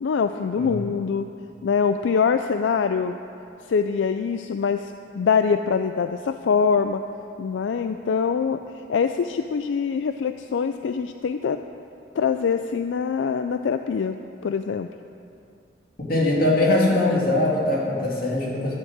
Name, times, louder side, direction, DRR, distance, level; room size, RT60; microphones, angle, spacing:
voice 1, 0.0-1.3 1.6-3.2 3.7-7.0 7.4-8.6 8.9-11.6 12.1-14.2 14.4-14.9, left 6 dB, 80° left, 8 dB, 0.4 m, -24 dB
voice 2, 16.1-18.7, left 2 dB, 50° left, -4 dB, 2.7 m, -21 dB
12.0 x 7.3 x 8.0 m, 2.6 s
head